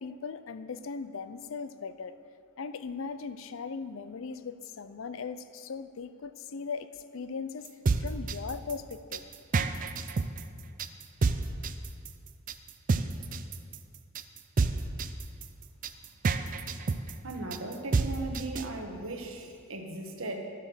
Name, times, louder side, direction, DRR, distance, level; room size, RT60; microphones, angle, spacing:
voice 1, 0.0-2.1 2.6-7.7 8.0-9.3, left 5 dB, 65° left, 0.5 m, -38 dB
sound 1, 7.6-18.7, right 4 dB, 40° right, 0.4 m, -29 dB
voice 2, 17.2-20.5, right 2 dB, 75° right, 1.3 m, -37 dB
12.0 x 7.4 x 6.5 m
head